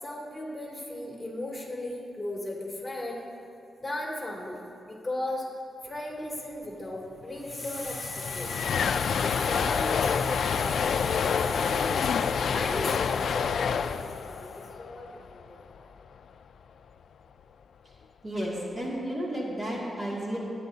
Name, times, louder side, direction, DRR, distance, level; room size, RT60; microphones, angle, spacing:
voice 1, 0.0-3.2 3.8-5.5 5.8-15.8, left 1 dB, 15° left, -4 dB, 2.7 m, -36 dB
sound 1, 7.2-7.3 7.5-15.7, left 6 dB, 80° left, 0.3 m, -28 dB
voice 2, 18.2-20.4, equal, 35° right, -5 dB, 2.4 m, -32 dB
23.0 x 9.8 x 2.8 m, 2.9 s
wide cardioid pair, 105°, 0 cm